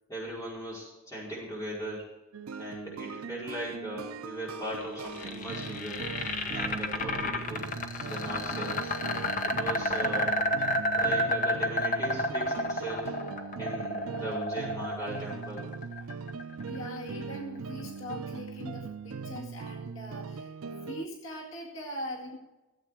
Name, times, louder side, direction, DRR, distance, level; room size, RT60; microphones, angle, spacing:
voice 1, 0.1-2.1 2.6-6.0 6.5-7.7 8.0-9.0 9.4-10.4 11.0-13.2 13.6-15.7, right 1 dB, 15° left, -6 dB, 5.0 m, -38 dB
sound 1, 2.3-21.0, right 5 dB, 80° right, 0.5 m, -40 dB
sound 2, 4.8-16.9, left 1 dB, 35° left, 1.0 m, -31 dB
voice 2, 9.8-10.2 16.7-22.4, left 1 dB, 65° left, -2 dB, 2.1 m, -41 dB
14.5 x 8.2 x 4.8 m, 1.1 s
head